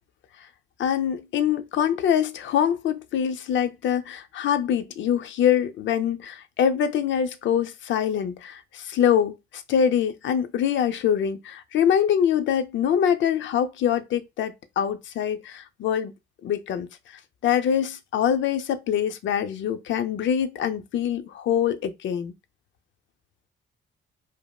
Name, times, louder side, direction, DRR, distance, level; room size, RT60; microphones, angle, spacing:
voice 1, 0.8-16.1 16.4-16.9 17.4-22.3, left 9 dB, 70° left, 0.6 m, -24 dB
5.0 x 2.0 x 2.3 m
cardioid pair, 90°, 20 cm